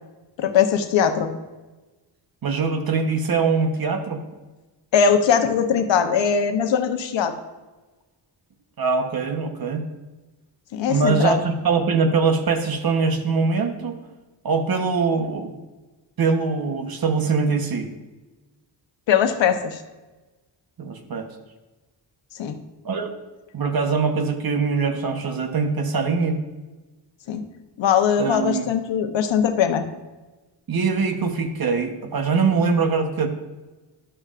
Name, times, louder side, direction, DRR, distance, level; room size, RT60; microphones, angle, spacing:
voice 1, 0.4-1.3 4.9-7.3 10.7-11.4 19.1-19.8 22.4-22.5 27.3-27.4 27.8-29.8, left 7 dB, 80° left, 7 dB, 0.9 m, -20 dB
voice 2, 2.4-4.2 8.8-9.8 10.8-14.0 14.4-15.5 16.2-17.9 20.8-21.3 22.8-23.1 23.5-26.4 28.2-28.7 30.7-33.3, right 4 dB, 50° right, 7 dB, 1.1 m, -22 dB
11.0 x 6.7 x 2.5 m, 1.2 s
cardioid pair, 65°, 44 cm